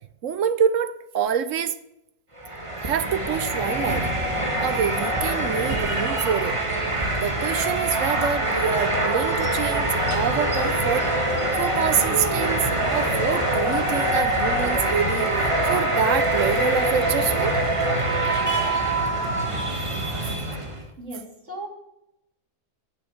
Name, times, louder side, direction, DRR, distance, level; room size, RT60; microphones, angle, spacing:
voice 1, 0.2-1.8 2.8-6.6 7.2-11.1 11.6-17.6 20.2-20.3, right 8 dB, 65° right, 12 dB, 0.9 m, -26 dB
sound 1, 2.4-20.8, right 1 dB, 20° right, 1.5 m, -24 dB
voice 2, 21.0-21.7, right 1 dB, 45° right, -2 dB, 3.2 m, -36 dB
9.0 x 6.6 x 7.9 m, 0.83 s
omnidirectional pair, 1.6 m